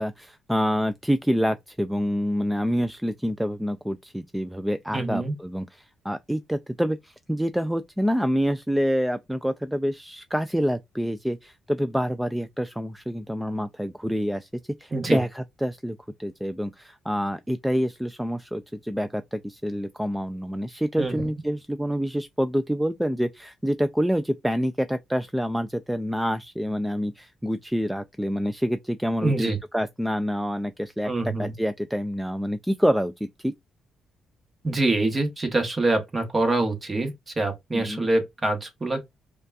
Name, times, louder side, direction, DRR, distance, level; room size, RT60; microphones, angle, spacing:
voice 1, 0.0-14.5 14.8-33.5 37.7-38.1, equal, 5° right, 0.3 m, -27 dB
voice 2, 4.9-5.3 14.9-15.2 21.0-21.2 29.2-29.6 31.0-31.5 34.6-39.0, right 2 dB, 25° right, 1.2 m, -25 dB
5.1 x 2.3 x 2.4 m
cardioid pair, 90°, 0 cm